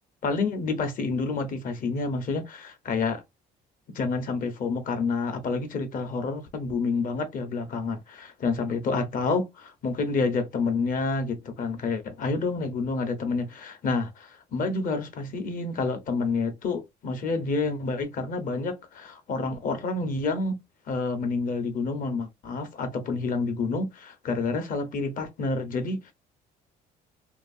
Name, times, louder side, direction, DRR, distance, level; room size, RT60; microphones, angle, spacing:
voice 1, 0.2-3.2 3.9-20.6 20.9-26.1, left 4 dB, 55° left, 1.0 m, -28 dB
2.9 x 2.4 x 2.7 m
cardioid pair, 110°, 17 cm